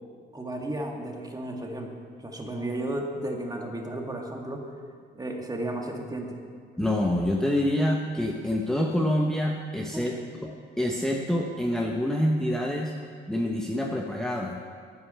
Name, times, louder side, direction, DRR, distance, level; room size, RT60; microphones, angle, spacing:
voice 1, 0.3-1.9 2.2-4.7 5.1-6.4 9.9-10.3, right 1 dB, 20° right, 1 dB, 2.0 m, -33 dB
voice 2, 6.8-10.1 10.4-12.9 13.3-14.6, left 1 dB, 5° left, 0 dB, 1.0 m, -26 dB
9.7 x 9.7 x 6.8 m, 2.2 s
cardioid pair, 90°, 20 cm